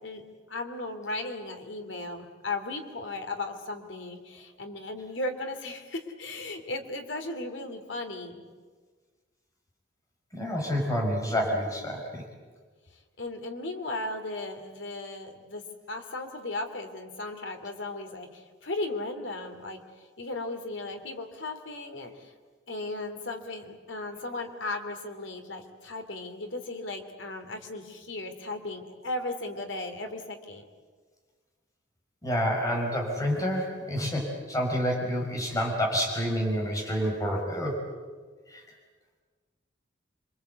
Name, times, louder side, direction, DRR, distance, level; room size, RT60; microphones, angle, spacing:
voice 1, 0.0-8.4 13.2-15.6 15.9-19.8 20.2-22.3 22.7-30.6, left 2 dB, 80° left, 5 dB, 3.0 m, -36 dB
voice 2, 10.3-12.2 32.2-37.8 38.5-38.6, equal, 20° left, -1 dB, 5.4 m, -28 dB
26.5 x 24.0 x 8.2 m, 1.5 s
head